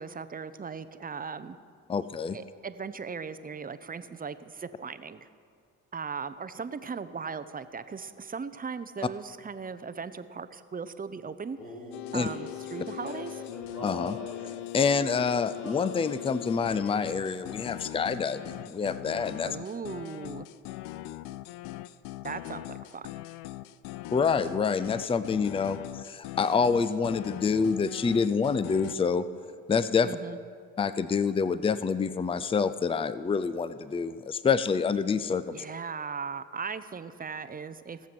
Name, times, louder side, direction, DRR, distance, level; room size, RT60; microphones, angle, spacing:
voice 1, 0.0-1.6 2.3-5.3 5.9-11.6 12.1-13.4 19.4-20.5 22.2-23.1 30.0-30.4 35.5-38.1, right 5 dB, 20° right, 12 dB, 0.7 m, -38 dB
voice 2, 1.9-2.4 12.1-12.3 13.8-14.2 14.7-19.6 24.1-29.3 29.7-30.1 30.8-35.6, left 5 dB, 15° left, 14 dB, 0.5 m, -27 dB
Male singing, 11.5-16.0 16.7-17.1 17.7-18.0 18.3-19.2, left 2 dB, 90° left, 2.5 m, -43 dB
sound 1, 11.9-28.9, left 15 dB, 70° left, 0.5 m, -41 dB
17.5 x 7.4 x 6.1 m, 2.2 s
hypercardioid pair, 50°, 41 cm